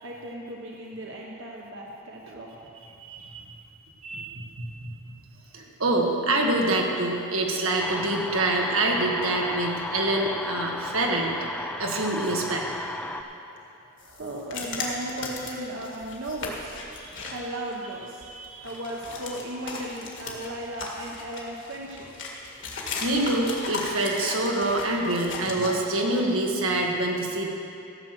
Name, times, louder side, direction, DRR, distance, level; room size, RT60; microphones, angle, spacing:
voice 1, 0.0-2.6 3.4-3.5 13.5-13.7 14.0-16.8 17.3-18.2 18.6-22.1, right 1 dB, 60° right, -2 dB, 1.1 m, -36 dB
voice 2, 3.0-3.4 4.0-4.9 5.5-11.3 11.8-12.7 17.0-17.3 18.3-18.7 23.0-27.5, right 2 dB, 85° right, 0 dB, 1.7 m, -26 dB
sound 1, 7.8-13.2, left 1 dB, 5° left, 0.5 m, -34 dB
sound 2, 14.0-17.4 17.7-17.8 18.2-25.7, left 3 dB, 60° left, 1.9 m, -36 dB
14.5 x 7.6 x 6.1 m, 2.7 s
head